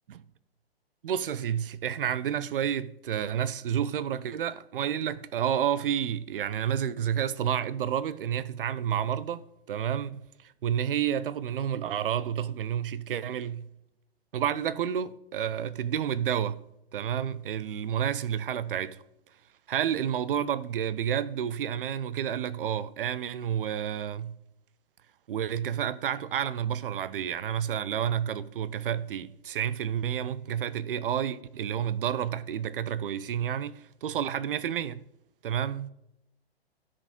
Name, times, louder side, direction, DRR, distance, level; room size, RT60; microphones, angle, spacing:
voice 1, 1.0-13.7 14.3-16.6 16.9-19.0 19.7-24.4 25.3-35.0 35.4-35.9, right 9 dB, 60° right, 0.7 m, -30 dB
13.0 x 5.1 x 3.7 m
figure-of-eight pair, 125°, 31 cm